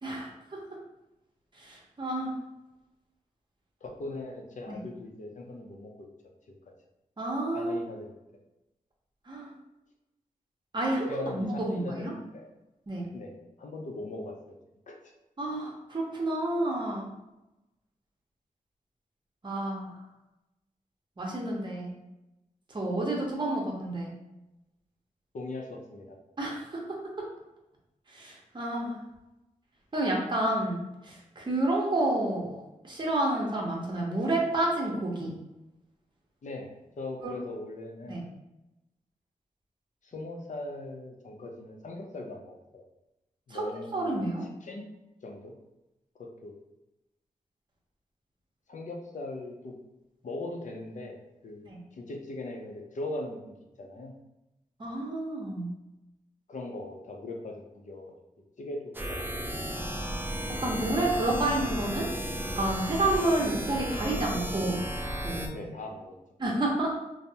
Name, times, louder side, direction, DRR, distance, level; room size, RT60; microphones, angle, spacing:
voice 1, 1.6-2.3 4.7-4.8 7.2-7.7 9.3-9.5 10.7-12.1 12.9-13.0 15.4-17.1 19.4-19.9 21.2-21.9 22.7-24.1 26.4-26.8 28.1-28.9 29.9-35.3 37.2-37.3 38.1-38.2 43.5-44.4 51.6-51.8 54.8-55.7 60.6-62.1 62.6-64.8 65.2-65.6 66.4-66.9, right 1 dB, 35° right, -2 dB, 0.7 m, -30 dB
voice 2, 3.8-6.1 6.5-6.6 7.5-8.2 11.1-12.5 13.1-14.6 14.9-15.0 25.3-26.2 36.4-38.2 40.0-42.8 43.5-44.9 45.2-45.5 46.2-46.5 48.7-49.8 50.2-51.2 51.4-51.6 51.9-53.4 53.8-54.1 56.5-58.1 58.6-59.4 65.5-66.1, left 2 dB, 60° left, 2 dB, 0.5 m, -40 dB
sound 1, 58.9-65.5, right 1 dB, 15° right, 0.3 m, -34 dB
3.3 x 2.0 x 2.7 m, 0.97 s
wide cardioid pair, 95°, 14 cm